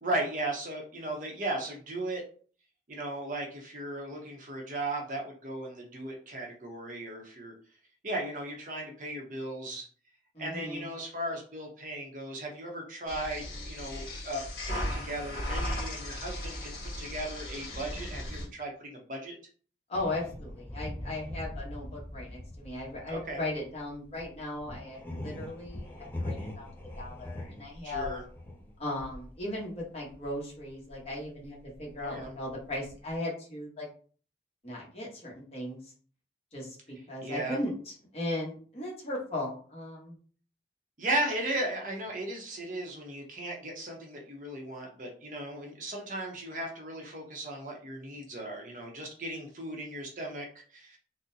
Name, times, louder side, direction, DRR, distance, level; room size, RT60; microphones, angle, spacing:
voice 1, 0.0-2.2 2.9-7.5 8.0-9.8 10.4-19.3 23.1-23.4 27.8-28.2 32.0-32.3 37.2-37.6 41.0-50.5 50.7-51.0, right 1 dB, 45° right, 1 dB, 0.7 m, -36 dB
voice 2, 10.3-10.9 19.9-25.9 26.2-26.7 27.0-28.1 28.8-33.9 34.6-35.8 36.5-40.2, left 1 dB, 35° left, -4 dB, 1.0 m, -37 dB
sound 1, 13.1-18.5, left 1 dB, 55° left, 1.5 m, -36 dB
sound 2, 19.9-30.4 30.7-33.1, left 1 dB, 10° left, 0.4 m, -42 dB
3.7 x 2.1 x 2.7 m, 0.43 s
head